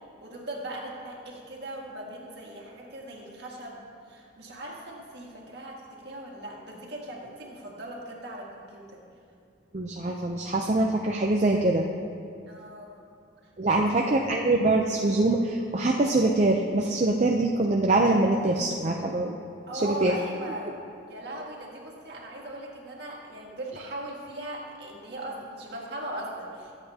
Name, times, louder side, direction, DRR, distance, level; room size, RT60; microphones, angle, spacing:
voice 1, 0.2-3.8 4.1-9.0 12.5-13.0 13.7-14.1 19.7-20.7 21.1-26.7, right 1 dB, 60° right, -2 dB, 2.0 m, -39 dB
voice 2, 9.7-11.9 13.6-19.4 19.8-20.1, right 2 dB, 35° right, 0 dB, 0.6 m, -24 dB
22.0 x 8.0 x 2.8 m, 2.4 s
head